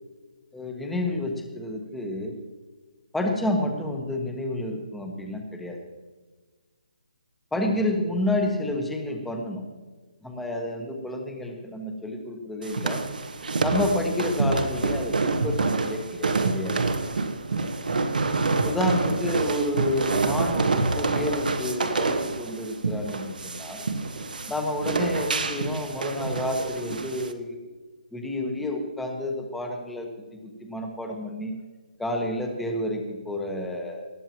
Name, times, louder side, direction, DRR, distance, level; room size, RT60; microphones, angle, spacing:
voice 1, 0.5-2.4 3.1-5.8 7.5-9.6 10.2-13.0 13.6-16.8 18.6-23.8 24.5-27.7 28.1-31.6 32.0-34.1, left 1 dB, 5° left, 2 dB, 1.2 m, -30 dB
sound 1, 12.6-27.3, right 3 dB, 85° right, 1.5 m, -27 dB
19.5 x 13.5 x 3.0 m, 1.3 s
hypercardioid pair, 165°, 5 cm